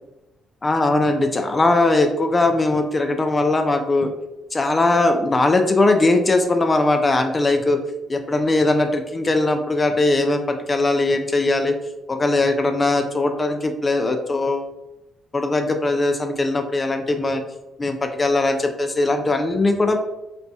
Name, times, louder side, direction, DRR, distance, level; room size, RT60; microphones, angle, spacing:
voice 1, 0.6-4.1 4.5-7.8 8.1-11.7 12.1-14.7 15.3-17.4 17.8-20.0, left 2 dB, 25° left, 6 dB, 0.4 m, -20 dB
4.2 x 2.2 x 2.7 m, 0.97 s
cardioid pair, 90°, 0 cm